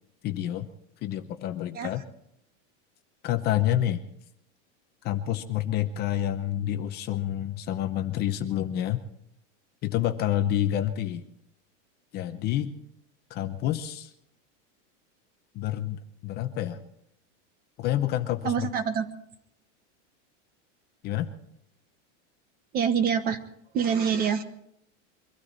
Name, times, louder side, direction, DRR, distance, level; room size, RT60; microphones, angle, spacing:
voice 1, 0.2-0.7 1.0-2.0 3.2-4.0 5.0-9.0 9.8-11.2 12.1-12.7 13.3-14.1 15.5-16.8 17.8-18.7 21.0-21.3, left 12 dB, 25° left, 8 dB, 0.7 m, -28 dB
voice 2, 18.4-19.1 22.7-23.4 23.7-24.4, right 7 dB, 25° right, 12 dB, 1.0 m, -25 dB
23.5 x 13.0 x 4.0 m, 0.76 s
supercardioid pair, 170°, 36 cm